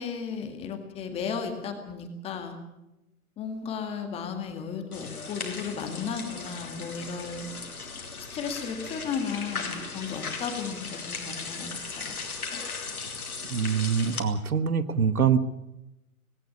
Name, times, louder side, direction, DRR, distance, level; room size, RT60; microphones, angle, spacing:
voice 1, 0.0-2.6 3.4-7.5 8.3-12.2, left 6 dB, 15° left, 5 dB, 2.0 m, -34 dB
sound 1, 4.9-14.2, left 4 dB, 75° left, 3.2 m, -37 dB
voice 2, 13.5-15.4, right 7 dB, 75° right, 13 dB, 1.5 m, -24 dB
18.5 x 17.5 x 8.3 m, 0.91 s
figure-of-eight pair, 140°, 44 cm